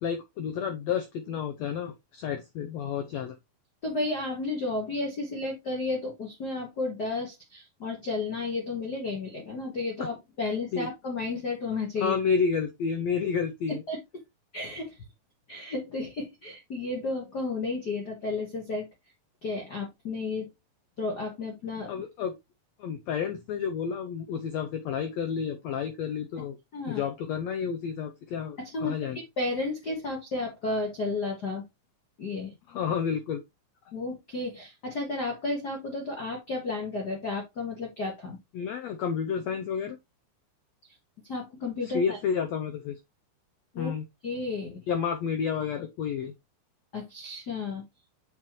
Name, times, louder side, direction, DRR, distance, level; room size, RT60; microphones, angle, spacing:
voice 1, 0.0-3.4 10.0-10.1 10.7-10.9 12.0-13.8 21.9-22.3 22.8-26.6 26.9-29.2 32.7-33.4 38.5-40.0 41.8-43.0 43.8-44.0 44.9-46.3, left 6 dB, 80° left, 1.5 m, -30 dB
voice 2, 3.8-12.1 13.7-14.0 14.5-15.0 15.5-18.9 19.4-20.5 21.0-21.9 26.7-27.0 28.6-31.6 32.2-32.5 33.9-38.4 41.3-42.2 43.7-43.9 44.2-44.9 46.9-47.8, left 3 dB, 50° left, 1.2 m, -32 dB
7.2 x 5.0 x 3.0 m
omnidirectional pair, 4.0 m